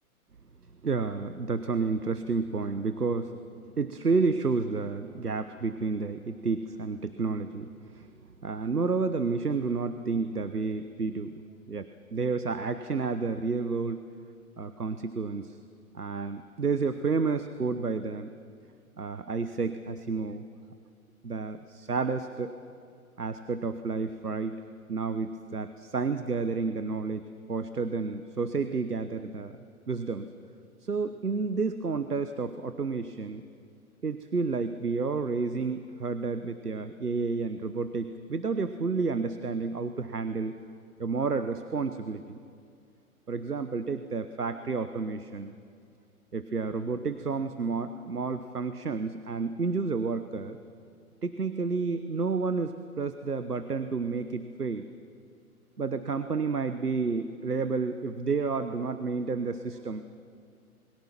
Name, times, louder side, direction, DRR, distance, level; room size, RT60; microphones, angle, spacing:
voice 1, 0.8-8.1 8.4-11.3 11.7-11.8 12.1-14.0 14.6-15.6 15.9-18.3 19.0-20.4 21.2-22.5 23.2-24.6 24.9-27.2 27.5-29.6 29.9-30.3 30.8-33.4 34.0-40.5 41.0-42.4 43.3-45.5 46.3-50.6 51.2-54.9 55.8-60.0, right 4 dB, 85° right, 10 dB, 1.1 m, -30 dB
27.5 x 22.0 x 6.0 m, 2.3 s
figure-of-eight pair, 125°, 45 cm